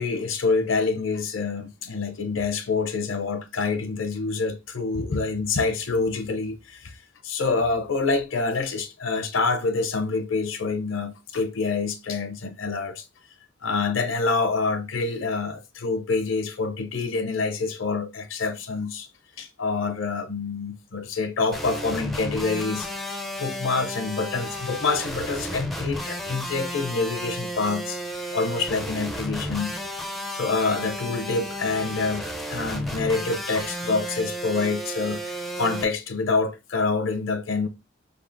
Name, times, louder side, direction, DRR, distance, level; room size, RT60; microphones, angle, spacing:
voice 1, 0.0-7.0 7.2-13.0 13.6-19.1 19.4-28.0 28.3-29.8 30.3-37.7, left 4 dB, 80° left, 0.6 m, -27 dB
sound 1, 21.5-35.8, equal, ahead, 0.4 m, -33 dB
5.0 x 3.6 x 2.6 m
head